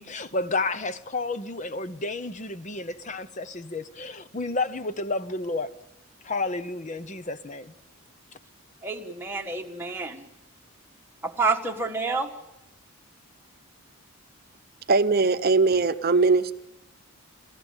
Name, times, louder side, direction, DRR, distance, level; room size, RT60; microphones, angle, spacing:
voice 1, 0.0-5.8 6.2-7.7, left 3 dB, 35° left, 0.8 m, -31 dB
voice 2, 8.8-10.2 11.2-12.3, right 4 dB, 10° right, 1.5 m, -28 dB
voice 3, 14.9-16.6, right 4 dB, 45° right, 0.8 m, -20 dB
28.0 x 14.5 x 8.9 m
head